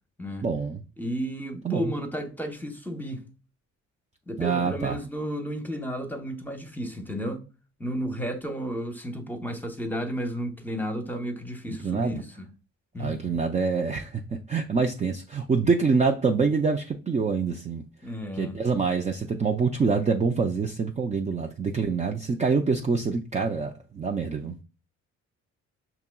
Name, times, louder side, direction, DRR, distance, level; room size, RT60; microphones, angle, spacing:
voice 1, 0.4-0.8 1.6-1.9 4.4-5.0 11.8-12.2 13.0-14.2 14.5-17.8 18.4-24.6, right 5 dB, 25° right, 0.4 m, -26 dB
voice 2, 1.0-3.2 4.3-7.5 7.8-12.4 12.9-13.4 18.0-18.6, equal, 5° left, 0.8 m, -32 dB
5.7 x 2.9 x 2.2 m
cardioid pair, 90°, 30 cm